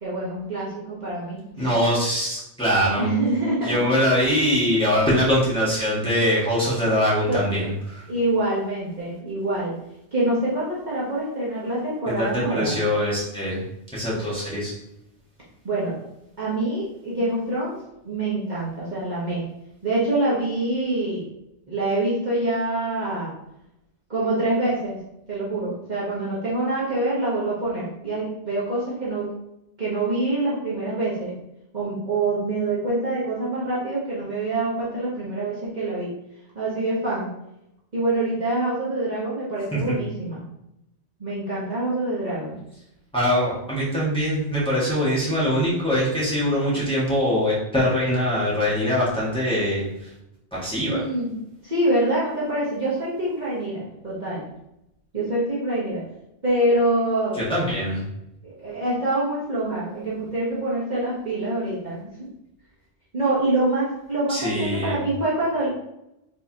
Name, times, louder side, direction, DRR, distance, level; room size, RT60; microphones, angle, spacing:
voice 1, 0.0-1.7 3.0-3.8 7.3-7.7 8.1-9.7 10.1-12.8 15.6-16.0 16.4-17.7 18.0-19.4 19.8-21.3 21.7-23.3 24.1-25.0 25.3-29.3 29.8-31.3 31.7-36.1 36.5-37.3 37.9-40.4 41.2-42.6 50.8-51.3 51.6-54.4 55.1-56.0 56.4-57.4 58.4-62.3 63.1-65.7, right 2 dB, 40° right, -8 dB, 1.3 m, -25 dB
voice 2, 1.6-3.1 3.6-8.0 12.1-13.6 13.9-14.7 39.7-40.0 43.1-50.1 50.5-51.0 57.4-58.0 64.3-65.0, equal, 5° left, -8 dB, 1.7 m, -23 dB
4.8 x 3.9 x 2.9 m, 0.84 s
omnidirectional pair, 1.2 m